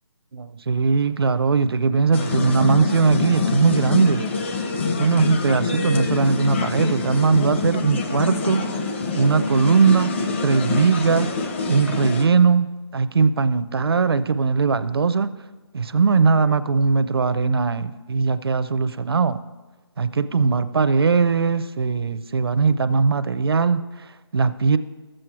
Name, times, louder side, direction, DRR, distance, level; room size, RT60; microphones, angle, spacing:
voice 1, 0.3-4.3 5.0-8.7 9.1-10.1 10.4-11.3 11.7-15.3 15.7-19.4 20.0-23.8 24.3-24.8, right 5 dB, 60° right, 13 dB, 0.6 m, -20 dB
sound 1, 2.1-12.3, left 4 dB, 25° left, 0.7 m, -26 dB
12.5 x 7.7 x 4.6 m, 1.3 s
figure-of-eight pair, 160°, 14 cm